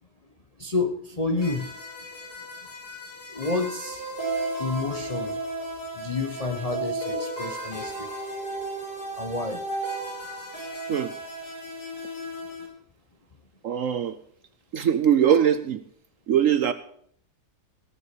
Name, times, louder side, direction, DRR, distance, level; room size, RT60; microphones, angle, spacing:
voice 1, 0.6-1.7 3.3-4.0 4.6-5.4 5.9-8.1 9.2-9.6, left 3 dB, 30° left, 6 dB, 0.7 m, -29 dB
sound 1, 1.4-12.7, right 2 dB, 65° left, 5.0 m, -34 dB
voice 2, 13.6-14.2 14.7-15.8 16.3-16.7, right 9 dB, 65° right, 12 dB, 0.9 m, -21 dB
17.5 x 6.9 x 6.8 m, 0.63 s
omnidirectional pair, 1.8 m